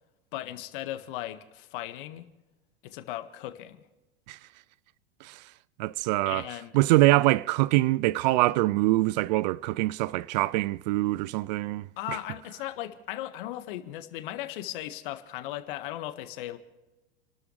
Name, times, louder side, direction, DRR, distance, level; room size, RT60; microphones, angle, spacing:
voice 1, 0.3-2.3 2.8-3.9 6.2-6.8 12.0-16.6, left 14 dB, 55° left, 1.6 m, -37 dB
voice 2, 5.2-5.5 5.8-6.4 6.7-11.9, right 19 dB, 45° right, 0.4 m, -24 dB
29.5 x 12.5 x 3.3 m
figure-of-eight pair, 95°, 31 cm